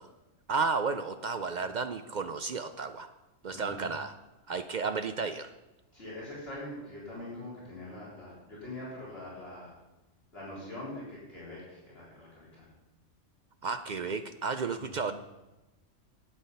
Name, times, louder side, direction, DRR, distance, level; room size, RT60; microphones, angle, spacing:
voice 1, 0.5-3.1 3.4-4.1 4.5-5.5 13.6-15.1, right 4 dB, 65° right, 9 dB, 0.4 m, -32 dB
voice 2, 3.5-3.9 5.9-9.7 10.3-12.7 14.7-15.0, left 1 dB, 50° left, -7 dB, 3.9 m, -43 dB
11.5 x 8.5 x 5.4 m, 1.0 s
omnidirectional pair, 1.3 m